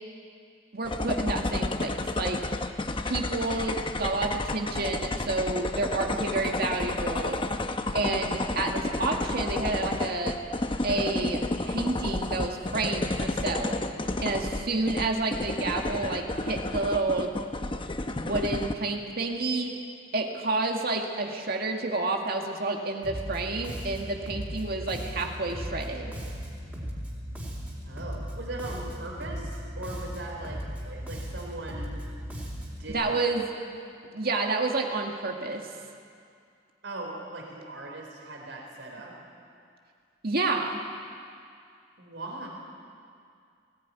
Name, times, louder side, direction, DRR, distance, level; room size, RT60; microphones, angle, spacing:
voice 1, 0.7-2.4 3.0-7.4 7.9-10.4 10.8-13.8 14.2-17.3 18.1-19.8 20.1-26.1 32.9-33.5 34.1-35.6 40.2-40.8, right 3 dB, 55° right, 2 dB, 2.0 m, -29 dB
sound 1, 0.8-18.7, left 2 dB, 30° left, 0.8 m, -31 dB
voice 2, 13.8-14.2 27.8-31.9 32.8-33.3 36.8-39.1 42.0-42.5, right 2 dB, 80° right, 0 dB, 4.3 m, -40 dB
Bass guitar, 23.0-32.9, equal, 10° right, 4.1 m, -37 dB
20.0 x 17.0 x 9.6 m, 2.3 s
head